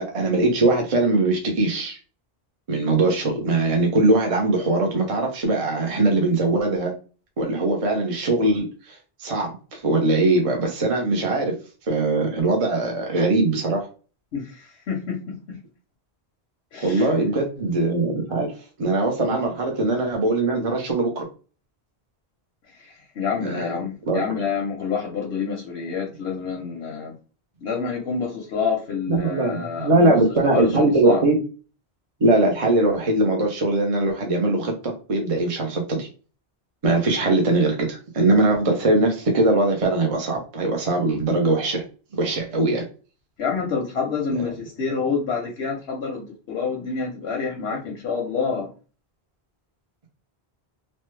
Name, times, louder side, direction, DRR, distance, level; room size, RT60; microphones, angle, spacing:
voice 1, 0.0-2.0 2.7-6.9 7.4-11.5 11.9-13.9 16.8-18.5 18.8-21.3 23.4-23.7 24.1-24.2 29.1-31.4 32.2-36.1 36.8-41.8 42.1-42.9, right 2 dB, 40° right, 1 dB, 0.7 m, -21 dB
voice 2, 14.3-15.6 16.7-17.1 22.8-27.1 27.6-30.2 30.5-31.2 43.4-48.7, left 5 dB, 90° left, -1 dB, 1.0 m, -28 dB
3.1 x 2.1 x 3.1 m, 0.35 s
omnidirectional pair, 1.1 m